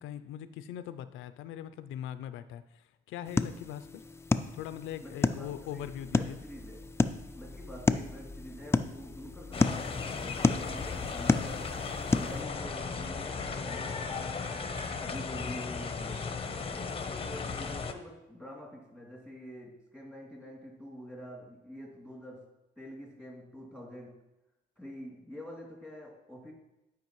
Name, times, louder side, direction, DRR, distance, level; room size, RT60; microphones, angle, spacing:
voice 1, 0.0-4.0 4.5-6.4, left 10 dB, 90° left, 12 dB, 0.4 m, -41 dB
sound 1, 3.2-12.4, left 3 dB, 15° left, 0.3 m, -32 dB
voice 2, 5.0-6.8 7.3-11.7 12.1-14.7 15.0-16.3 16.8-22.5 22.8-24.2 24.8-26.5, equal, 5° right, -3 dB, 2.6 m, -46 dB
sound 2, 9.5-17.9, left 5 dB, 30° left, 0.7 m, -36 dB
11.0 x 4.9 x 3.0 m, 0.93 s
cardioid pair, 90°, 20 cm